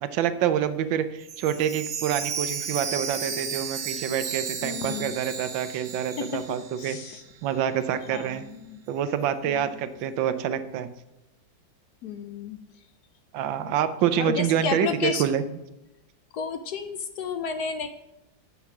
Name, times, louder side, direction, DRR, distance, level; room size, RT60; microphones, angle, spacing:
voice 1, 0.0-7.0 7.4-8.4 8.9-10.9 13.3-15.4, right 9 dB, 80° right, 12 dB, 1.4 m, -27 dB
Chime, 1.2-7.2 7.5-7.6 8.1-8.2, right 6 dB, 50° right, 1.1 m, -34 dB
voice 2, 4.6-5.3 6.3-6.4 6.8-7.2 8.1-8.8 9.5-9.9 12.0-12.6 13.6-13.7 14.2-15.2 16.3-17.9, left 6 dB, 70° left, 8 dB, 1.0 m, -32 dB
8.3 x 5.6 x 5.8 m, 0.92 s
omnidirectional pair, 2.0 m